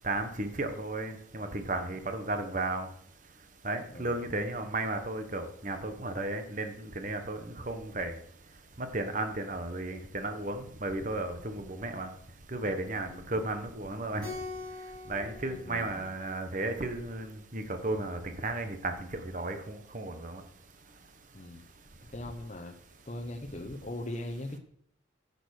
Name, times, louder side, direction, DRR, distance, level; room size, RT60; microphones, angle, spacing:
voice 1, 0.0-2.9 3.6-8.2 8.8-12.1 12.5-14.3 15.1-19.1 19.3-20.4, right 2 dB, 40° right, 7 dB, 1.2 m, -34 dB
voice 2, 13.0-13.4 15.5-16.1 21.3-21.6 22.1-22.7 23.1-24.6, left 1 dB, 35° left, 3 dB, 0.9 m, -40 dB
Keyboard (musical), 14.2-16.8, left 3 dB, 20° right, 6.5 m, -44 dB
11.0 x 8.1 x 6.5 m, 0.67 s
head